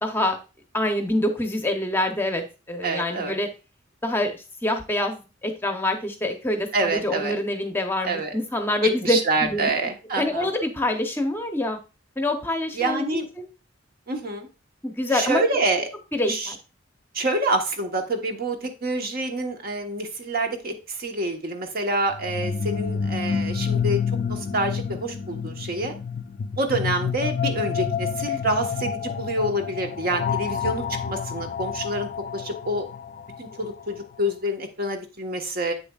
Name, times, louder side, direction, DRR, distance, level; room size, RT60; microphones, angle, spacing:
voice 1, 0.0-0.4 0.7-3.5 4.0-9.7 10.2-11.8 12.2-13.0 14.8-15.4 16.1-16.6, left 1 dB, 10° left, 5 dB, 0.8 m, -26 dB
voice 2, 2.8-3.4 6.7-7.4 8.0-8.3 8.8-10.5 12.7-13.3 14.1-14.5 15.1-15.9 16.3-16.5 17.1-24.0 24.3-25.9 26.6-32.8 33.4-35.7, right 2 dB, 50° right, 4 dB, 1.1 m, -27 dB
sound 1, 22.1-34.0, left 6 dB, 45° left, 0.3 m, -29 dB
8.1 x 6.8 x 2.3 m, 0.31 s
head